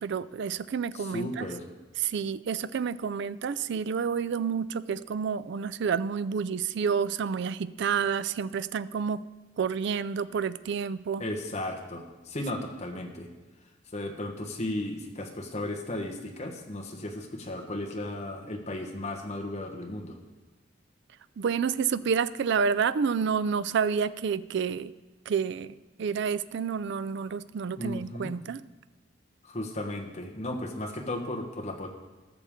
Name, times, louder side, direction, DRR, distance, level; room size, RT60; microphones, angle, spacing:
voice 1, 0.0-1.5 2.0-9.2 9.6-11.2 21.4-24.9 25.3-28.6, right 6 dB, 65° right, 15 dB, 0.4 m, -29 dB
voice 2, 0.9-1.6 11.2-13.3 13.9-20.2 27.8-28.3 29.4-31.9, left 1 dB, 35° left, 1 dB, 1.2 m, -35 dB
18.5 x 6.9 x 3.7 m, 1.2 s
head